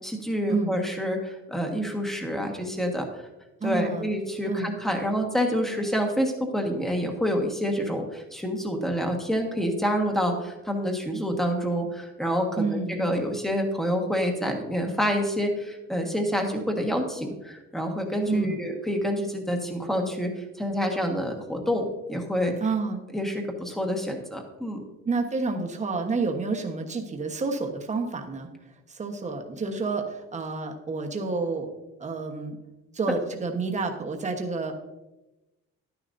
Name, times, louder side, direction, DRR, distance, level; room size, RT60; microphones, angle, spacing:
voice 1, 0.0-3.1 3.6-22.5 23.1-24.8, equal, ahead, 2 dB, 1.4 m, -27 dB
voice 2, 3.6-4.1 4.5-4.7 12.6-13.0 18.3-18.6 22.6-23.0 25.0-28.5 28.9-31.7 32.0-32.6 32.9-34.7, right 3 dB, 25° right, 3 dB, 1.2 m, -29 dB
11.5 x 10.0 x 2.6 m, 1.0 s
cardioid pair, 130°, 30 cm